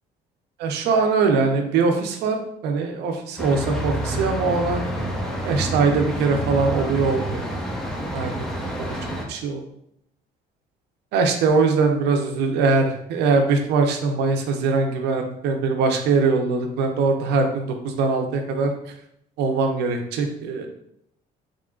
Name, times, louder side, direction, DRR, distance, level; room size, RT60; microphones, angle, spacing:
voice 1, 0.6-4.8 5.4-7.5 8.1-9.0 9.3-9.6 11.1-18.7 19.4-20.7, right 4 dB, 85° right, 4 dB, 0.6 m, -22 dB
sound 1, 3.4-9.2, equal, ahead, 0.6 m, -28 dB
3.7 x 3.6 x 2.3 m, 0.75 s
cardioid pair, 110°, 17 cm